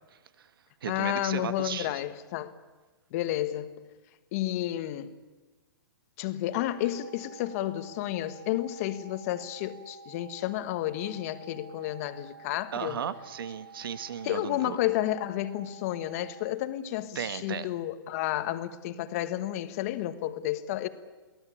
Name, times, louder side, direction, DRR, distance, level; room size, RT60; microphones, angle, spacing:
voice 1, 0.1-0.5 0.8-2.0 12.7-14.8 17.1-17.7, right 8 dB, 70° right, 1.7 m, -35 dB
voice 2, 0.9-2.5 3.1-3.7 4.3-5.1 6.2-13.0 14.2-20.9, left 14 dB, 40° left, 1.5 m, -31 dB
sound 1, 6.5-16.5, right 5 dB, 90° right, 7.9 m, -50 dB
23.5 x 17.5 x 8.7 m
hypercardioid pair, 150°, 12 cm